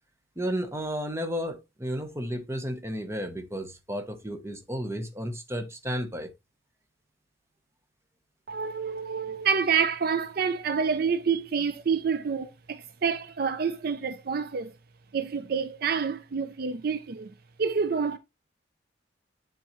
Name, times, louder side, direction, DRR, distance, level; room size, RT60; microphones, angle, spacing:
voice 1, 0.4-6.3, equal, 15° right, 0.8 m, -33 dB
voice 2, 8.5-14.7 15.1-17.3 17.6-18.2, right 6 dB, 55° right, 0.4 m, -28 dB
10.0 x 3.8 x 3.0 m
head